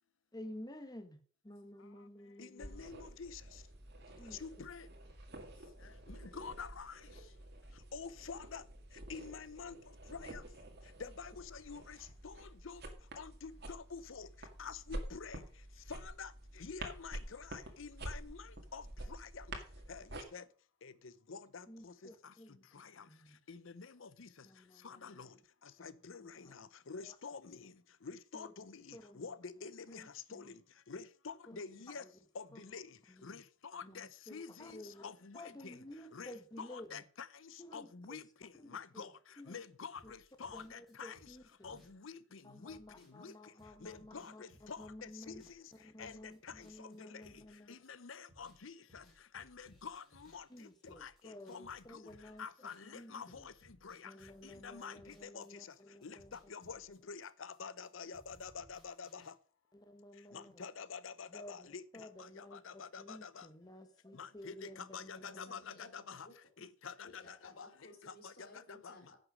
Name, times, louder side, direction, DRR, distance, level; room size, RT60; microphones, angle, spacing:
voice 1, 0.3-2.8 4.2-4.7 21.7-23.4 24.4-25.3 25.8-26.5 27.0-27.2 28.3-28.5 28.9-30.6 31.5-32.2 32.5-32.8 33.1-33.4 33.8-37.0 37.6-38.2 38.6-39.1 39.4-39.6 40.0-40.1 40.5-41.9 42.4-45.4 45.7-47.7 50.5-53.5 54.0-56.5 59.7-60.6 61.3-65.6, left 1 dB, 20° left, 1.2 m, -53 dB
voice 2, 2.4-3.4 4.4-4.9 6.1-7.0 7.9-8.6 9.1-9.8 10.1-10.4 11.0-12.0 12.2-12.8 13.2-14.3 14.6-15.4 15.9-16.3 16.6-18.8 19.1-19.4 19.9-20.4 20.8-21.9 22.7-23.0 23.5-24.3 24.8-25.3 25.8-27.7 28.0-30.0 30.3-30.5 30.9-32.0 32.3-32.9 33.2-33.4 33.7-35.8 36.1-39.1 39.5-41.2 41.6-42.8 43.2-43.3 43.8-45.3 46.0-46.7 47.0-47.2 47.7-49.0 49.3-50.4 50.8-51.1 51.5-52.0 52.4-53.5 53.8-54.1 54.4-55.5 56.0-59.3 60.3-61.8 62.2-63.5 64.1-66.3 66.6-67.7 68.1-68.3 68.7-68.9, left 5 dB, 70° left, 0.7 m, -48 dB
sound 1, 2.6-20.2, right 1 dB, 50° right, 1.9 m, -49 dB
sound 2, 39.9-47.9 48.1-48.6 48.9-53.0 53.3-55.8 56.0-57.9 58.1-59.3, equal, ahead, 4.0 m, -65 dB
voice 3, 65.2-66.7 67.0-69.2, left 2 dB, 45° left, 2.9 m, -57 dB
10.5 x 6.5 x 6.2 m
head